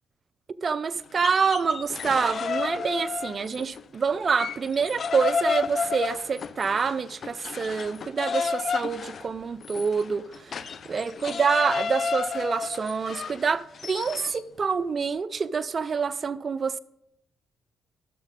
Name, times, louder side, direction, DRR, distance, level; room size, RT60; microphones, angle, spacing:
voice 1, 0.6-16.8, right 5 dB, 40° right, 0.5 m, -27 dB
sound 1, 1.1-3.8 4.1-14.4, left 5 dB, 50° left, 0.5 m, -32 dB
11.5 x 7.2 x 5.2 m
cardioid pair, 90°, 0 cm